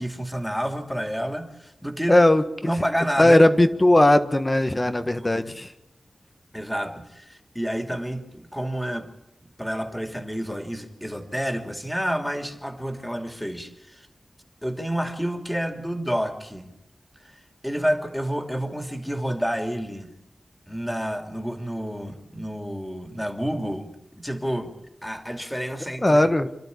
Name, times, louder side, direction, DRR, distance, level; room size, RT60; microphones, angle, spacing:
voice 1, 0.0-2.2 2.6-3.4 3.7-3.8 4.9-5.4 6.5-9.1 9.6-14.1 14.6-16.7 17.6-20.1 20.7-24.7 25.0-26.3, equal, 5° left, 5 dB, 2.9 m, -29 dB
voice 2, 2.1-2.7 3.2-5.7 26.0-26.5, left 1 dB, 25° left, 9 dB, 1.5 m, -18 dB
27.5 x 12.0 x 8.5 m, 0.91 s
wide cardioid pair, 60°, 0 cm